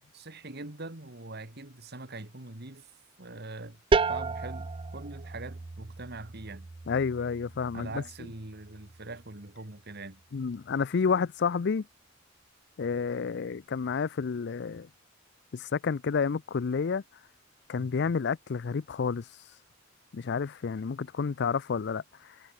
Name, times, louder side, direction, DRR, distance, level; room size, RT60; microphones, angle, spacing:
voice 1, 0.1-2.9 3.2-3.8 4.1-6.7 7.7-10.2, right 2 dB, 55° right, 2.4 m, -43 dB
sound 1, 3.9-9.4, right 4 dB, 25° right, 0.4 m, -33 dB
voice 2, 6.9-8.0 10.3-11.9 12.8-14.9 15.5-17.0 17.7-19.2 20.1-22.0, left 5 dB, 60° left, 0.5 m, -30 dB
head